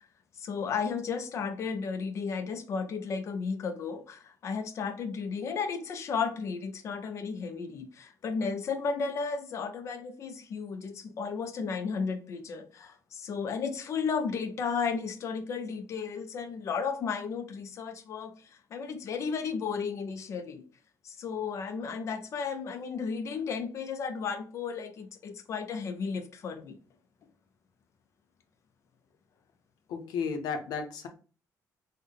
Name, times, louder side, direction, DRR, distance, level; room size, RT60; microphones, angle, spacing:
voice 1, 0.4-20.6 21.0-26.8, left 5 dB, 45° left, 0.4 m, -34 dB
voice 2, 29.9-31.1, left 5 dB, 90° left, 0.6 m, -33 dB
3.7 x 2.1 x 3.3 m
cardioid pair, 160°, 7 cm